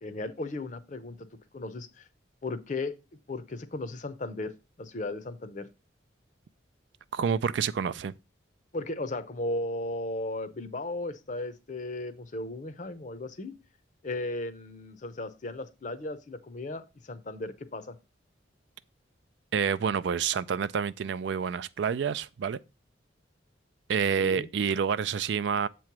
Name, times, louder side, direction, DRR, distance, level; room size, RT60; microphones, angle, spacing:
voice 1, 0.0-1.2 1.5-2.1 2.4-2.9 3.3-5.7 8.7-13.5 14.0-18.0 24.2-24.5, left 2 dB, 40° left, 0.6 m, -36 dB
voice 2, 7.1-8.1 19.5-22.6 23.9-25.7, right 6 dB, 65° right, 0.3 m, -28 dB
7.4 x 3.1 x 5.8 m
head